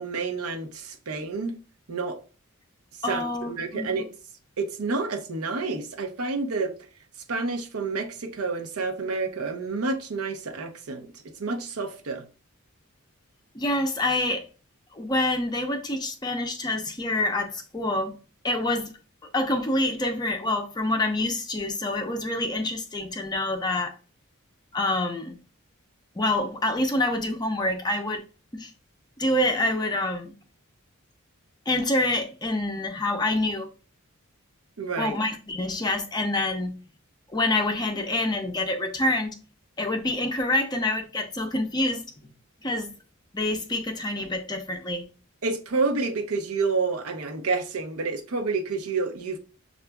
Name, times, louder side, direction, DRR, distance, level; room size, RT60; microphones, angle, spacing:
voice 1, 0.0-1.5 1.9-2.2 3.1-4.1 4.6-6.7 7.3-11.1 11.4-12.2 34.8-35.2 45.4-49.4, right 4 dB, 85° right, 0.7 m, -29 dB
voice 2, 3.0-3.9 13.5-14.5 14.9-18.2 18.4-18.9 19.3-23.9 24.7-25.4 26.2-28.2 28.5-28.7 29.2-30.3 31.7-33.7 35.0-36.7 37.3-39.3 39.8-42.0 42.6-42.9 43.3-45.0, left 2 dB, 20° left, 0.5 m, -26 dB
6.9 x 2.4 x 2.2 m
head